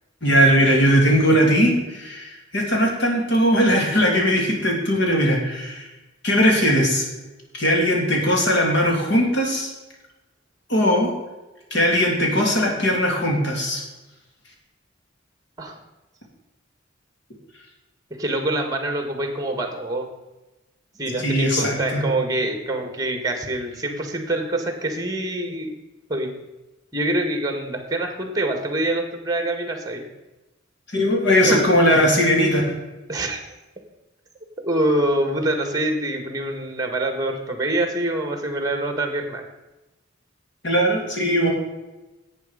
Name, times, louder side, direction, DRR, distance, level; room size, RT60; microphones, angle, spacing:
voice 1, 0.2-5.9 6.2-7.1 7.5-9.7 10.7-11.1 11.7-13.8 21.2-22.0 30.9-32.7 40.6-41.5, equal, 60° left, 0 dB, 3.0 m, -19 dB
voice 2, 18.2-20.1 20.9-25.7 26.1-26.3 26.9-30.0 31.4-31.6 33.1-33.4 34.6-39.4, right 1 dB, 20° right, 5 dB, 1.6 m, -25 dB
11.0 x 8.3 x 5.1 m, 1.1 s
head